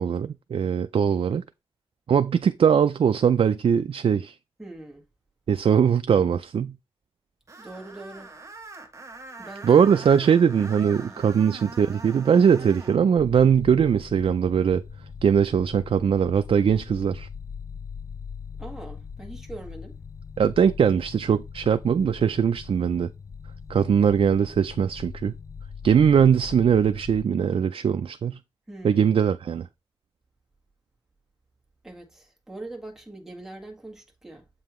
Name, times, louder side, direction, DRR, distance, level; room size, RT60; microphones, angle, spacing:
voice 1, 0.0-1.4 2.1-4.4 5.5-6.8 9.6-14.8 15.2-17.3 20.4-23.1 23.7-25.3 25.8-28.4 28.8-29.7, right 7 dB, 70° right, 0.4 m, -21 dB
voice 2, 4.6-5.1 7.6-8.4 9.4-9.9 11.1-11.3 18.6-20.0 28.7-29.2 31.8-34.5, right 2 dB, 5° right, 1.8 m, -42 dB
Screech, 7.5-13.0, right 3 dB, 30° right, 1.3 m, -43 dB
sound 1, 13.2-27.3, left 6 dB, 35° left, 0.4 m, -40 dB
7.7 x 5.5 x 3.1 m
wide cardioid pair, 140°, 10 cm